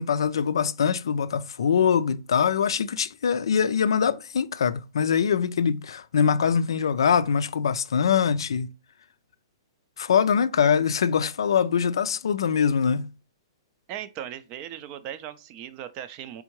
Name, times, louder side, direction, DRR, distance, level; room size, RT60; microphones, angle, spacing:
voice 1, 0.0-8.7 10.0-13.1, left 7 dB, 80° left, 0.3 m, -23 dB
voice 2, 13.9-16.4, right 10 dB, 35° right, 0.4 m, -38 dB
3.6 x 3.5 x 3.0 m
hypercardioid pair, 135°, 2 cm